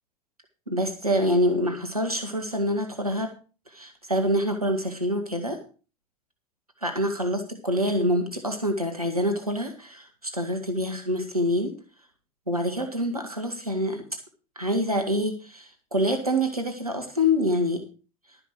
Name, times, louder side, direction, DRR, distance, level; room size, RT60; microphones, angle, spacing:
voice 1, 0.7-3.3 3.7-5.6 6.8-11.7 12.5-14.0 14.6-17.8, equal, 90° right, 5 dB, 1.9 m, -26 dB
12.5 x 10.0 x 4.6 m, 0.35 s
figure-of-eight pair, 75°, 18 cm